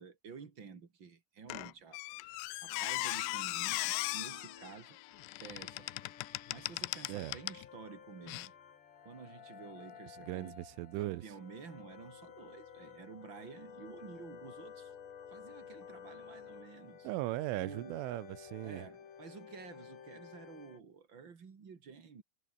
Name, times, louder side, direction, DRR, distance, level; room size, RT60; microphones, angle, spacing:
voice 1, 0.0-2.0 2.3-5.0 5.4-5.9 6.2-8.5 9.0-10.6 11.0-14.9 15.3-17.1 17.5-18.0 18.6-22.2, right 6 dB, 35° right, 2.1 m, -51 dB
Squeak, 1.5-7.7 8.3-8.5, left 22 dB, 90° left, 2.4 m, -38 dB
sound 1, 2.7-20.8, left 7 dB, 65° left, 5.8 m, -53 dB
voice 2, 10.2-11.2 17.1-18.8, right 17 dB, 90° right, 3.6 m, -38 dB
omnidirectional pair, 5.5 m